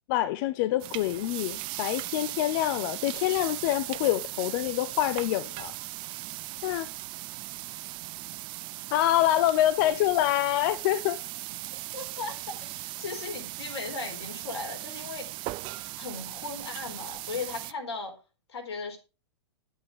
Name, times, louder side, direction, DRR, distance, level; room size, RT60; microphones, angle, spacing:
voice 1, 0.1-5.7 6.6-6.9 8.9-11.2, left 14 dB, 50° left, 0.7 m, -26 dB
sound 1, 0.8-17.7, right 19 dB, 35° right, 0.5 m, -38 dB
voice 2, 11.9-15.5 15.9-18.1 18.5-19.0, left 4 dB, 75° left, 4.4 m, -37 dB
10.5 x 9.1 x 5.0 m
hypercardioid pair, 120°, 14 cm